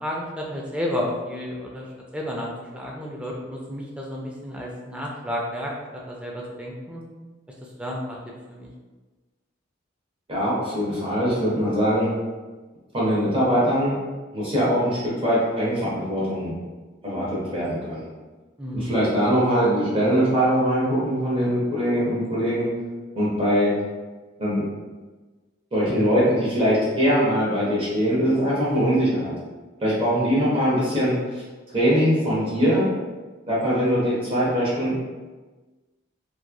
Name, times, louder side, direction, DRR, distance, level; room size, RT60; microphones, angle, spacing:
voice 1, 0.0-1.9 2.1-5.7 6.1-7.0 7.8-8.2 8.5-8.7 18.6-18.9 30.1-30.5, left 1 dB, 5° right, -3 dB, 0.3 m, -31 dB
voice 2, 10.3-12.1 12.9-13.9 14.3-16.5 17.0-18.1 18.7-22.7 23.1-23.8 24.4-24.6 25.7-29.3 29.8-31.4 31.7-32.8 33.5-35.0, equal, 30° right, -8 dB, 0.7 m, -22 dB
2.9 x 2.3 x 2.2 m, 1.3 s
head